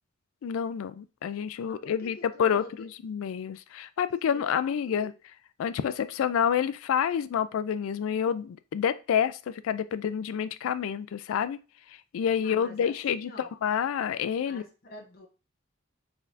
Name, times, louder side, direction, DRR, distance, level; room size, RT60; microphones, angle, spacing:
voice 1, 0.4-5.1 5.6-11.6 12.1-14.6, left 8 dB, 80° left, 0.3 m, -28 dB
voice 2, 1.6-2.9 4.2-5.0 12.4-13.5 14.5-15.3, left 2 dB, 45° left, 0.7 m, -47 dB
4.4 x 3.3 x 2.5 m
head